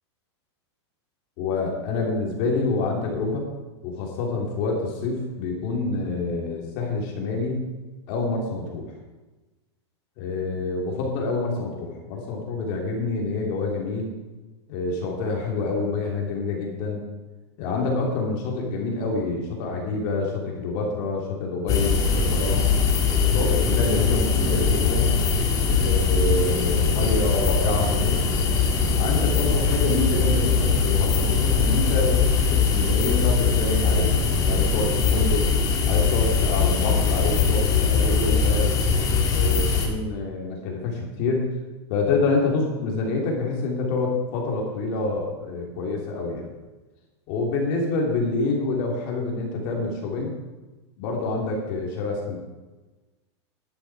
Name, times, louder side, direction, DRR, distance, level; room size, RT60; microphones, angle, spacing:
voice 1, 1.4-3.5 3.8-7.6 8.1-8.9 10.2-14.1 14.7-17.0 17.6-22.6 23.3-25.1 25.8-28.2 28.9-35.5 35.9-38.7 39.3-41.4 41.9-46.5 47.3-50.3 51.0-52.4, left 3 dB, 40° left, -1 dB, 3.2 m, -27 dB
sound 1, 21.7-39.9, left 5 dB, 25° left, 1.9 m, -21 dB
11.5 x 11.0 x 4.9 m, 1.2 s
supercardioid pair, 165°, 15 cm